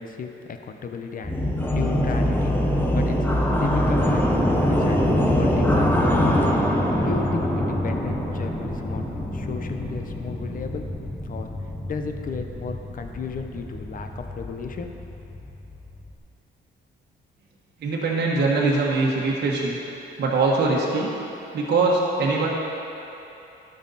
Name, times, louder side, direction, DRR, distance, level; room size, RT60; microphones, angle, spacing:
voice 1, 0.0-1.3 1.7-2.5 2.9-5.1 5.4-6.4 7.0-9.1 9.3-10.9 11.2-11.5 11.9-15.1, left 5 dB, 45° left, 5 dB, 0.8 m, -34 dB
sound 1, 1.2-16.1, equal, 10° left, 1.0 m, -24 dB
voice 2, 17.8-19.8 20.2-21.1 21.5-22.5, right 3 dB, 55° right, -4 dB, 1.3 m, -22 dB
12.5 x 6.4 x 4.1 m, 3.0 s
cardioid pair, 90°, 20 cm